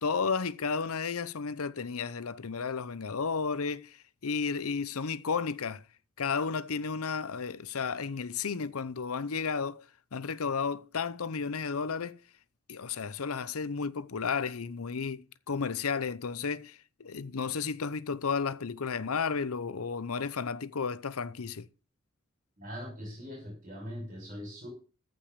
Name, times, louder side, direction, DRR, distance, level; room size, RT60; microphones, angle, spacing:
voice 1, 0.0-5.8 6.2-9.8 10.1-12.2 12.7-21.7, left 5 dB, 85° left, 0.7 m, -33 dB
voice 2, 22.6-24.7, equal, 40° right, 5.4 m, -41 dB
14.5 x 5.4 x 6.8 m
head